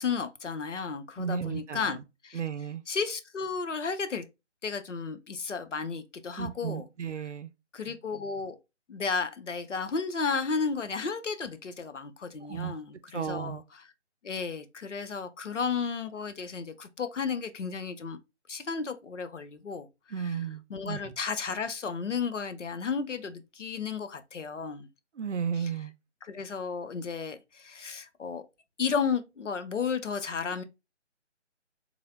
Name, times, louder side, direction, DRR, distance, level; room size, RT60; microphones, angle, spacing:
voice 1, 0.0-2.0 2.2-2.4 2.9-4.3 4.6-6.8 7.7-8.6 8.9-13.9 14.2-18.2 18.5-19.9 20.2-20.4 20.7-24.9 25.6-25.7 26.2-28.5 28.8-30.6, left 5 dB, 80° left, 0.6 m, -33 dB
voice 2, 1.2-2.0 2.3-2.8 6.4-7.5 12.5-12.8 13.1-13.6 20.1-21.0 25.2-25.9, right 7 dB, 75° right, 0.6 m, -34 dB
3.2 x 3.0 x 2.4 m
figure-of-eight pair, 150°, 36 cm